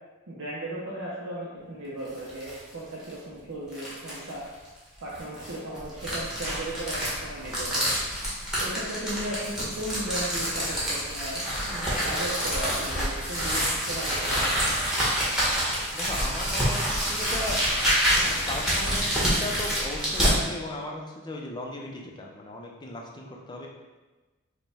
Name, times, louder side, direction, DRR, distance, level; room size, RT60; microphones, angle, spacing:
voice 1, 0.3-4.4 5.0-7.9 8.6-14.7, right 1 dB, 65° right, -6 dB, 0.6 m, -36 dB
sound 1, 2.0-2.6 3.0-3.1 3.7-4.3 5.1-20.4, equal, 5° right, 1.0 m, -27 dB
voice 2, 15.9-16.8 17.1-17.6 18.2-23.7, left 1 dB, 20° left, -1 dB, 0.5 m, -37 dB
5.1 x 2.2 x 3.3 m, 1.2 s
head